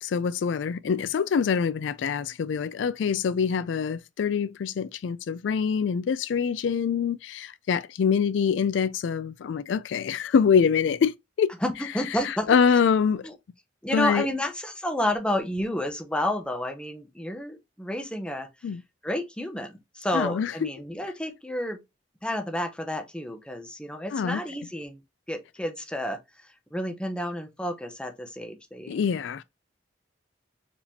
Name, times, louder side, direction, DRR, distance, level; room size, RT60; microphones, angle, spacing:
voice 1, 0.0-11.5 12.1-13.3 13.9-14.3 18.6-18.8 20.1-20.7 24.1-24.4 28.9-29.4, left 6 dB, 80° left, 0.3 m, -25 dB
voice 2, 11.6-12.5 13.2-13.3 13.8-18.5 19.0-21.8 22.2-25.0 25.3-26.2 26.7-28.9, left 1 dB, 5° left, 0.8 m, -30 dB
4.7 x 3.7 x 2.7 m
head